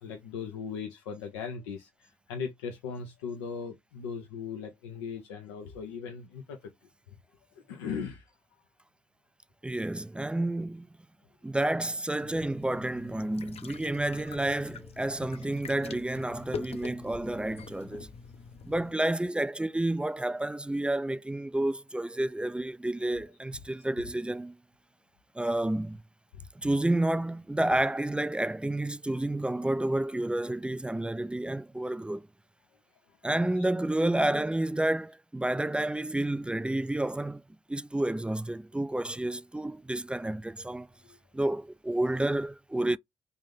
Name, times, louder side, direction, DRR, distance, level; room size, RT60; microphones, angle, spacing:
voice 1, 0.0-6.6 7.1-7.2 7.7-8.3, left 6 dB, 90° left, 0.6 m, -38 dB
voice 2, 9.6-10.9 11.4-18.1 18.7-24.6 25.4-26.0 26.6-32.3 33.2-37.4 37.7-40.9 41.3-43.0, right 1 dB, 10° right, 0.3 m, -30 dB
sound 1, 12.2-18.9, left 6 dB, 50° left, 0.6 m, -44 dB
3.4 x 2.6 x 3.5 m
hypercardioid pair, 45°, 13 cm